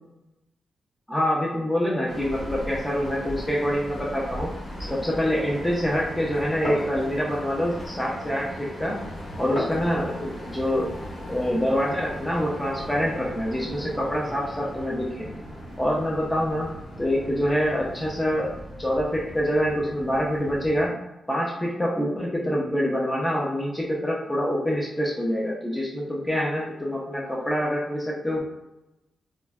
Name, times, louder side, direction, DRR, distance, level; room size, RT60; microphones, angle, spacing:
voice 1, 1.1-4.5 4.9-9.0 9.4-10.9 11.3-15.3 15.8-16.7 17.0-18.5 18.8-21.0 21.3-28.4, equal, 5° left, -4 dB, 0.4 m, -26 dB
sound 1, 2.1-20.9, equal, 65° left, 1.1 m, -38 dB
Glass, 4.7-9.8, left 1 dB, 50° left, 1.3 m, -38 dB
4.3 x 2.0 x 2.3 m, 0.96 s
wide cardioid pair, 150°, 0 cm